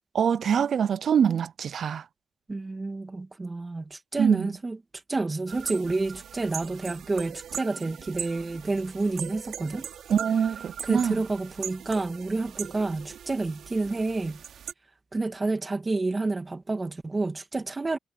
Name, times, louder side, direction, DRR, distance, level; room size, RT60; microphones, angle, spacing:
voice 1, 0.1-2.0 4.2-4.5 10.1-11.2, right 7 dB, 60° right, 0.5 m, -24 dB
voice 2, 2.5-4.8 5.1-9.8 10.8-14.4 15.1-18.0, right 3 dB, 20° right, 2.5 m, -29 dB
sound 1, 5.5-14.7, right 9 dB, 75° right, 3.3 m, -40 dB
cardioid pair, 125°, 0 cm